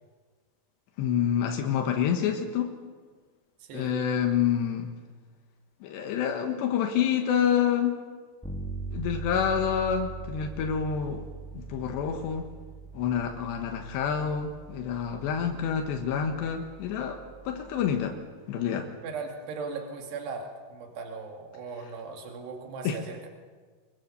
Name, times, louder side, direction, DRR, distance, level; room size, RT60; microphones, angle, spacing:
voice 1, 1.0-2.7 3.7-4.9 5.8-8.0 8.9-11.3 11.6-12.4 13.0-17.2 17.5-18.2 18.5-18.9 22.9-23.0, left 8 dB, 85° left, 4 dB, 3.7 m, -27 dB
voice 2, 3.6-4.0 19.0-23.3, right 4 dB, 75° right, 2 dB, 4.5 m, -38 dB
Bass guitar, 8.4-18.2, right 4 dB, 5° left, 1.2 m, -42 dB
25.0 x 22.0 x 7.0 m, 1.5 s
omnidirectional pair, 4.8 m